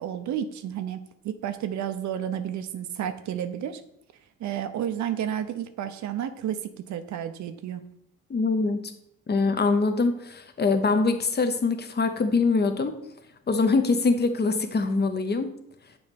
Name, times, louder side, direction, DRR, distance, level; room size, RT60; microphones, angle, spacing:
voice 1, 0.0-3.8 4.4-6.6 6.9-7.8, right 9 dB, 70° right, 10 dB, 0.7 m, -31 dB
voice 2, 8.3-8.9 9.3-12.9 13.5-15.5, left 4 dB, 35° left, 8 dB, 0.9 m, -23 dB
7.0 x 3.1 x 5.2 m, 0.76 s
cardioid pair, 90°, 30 cm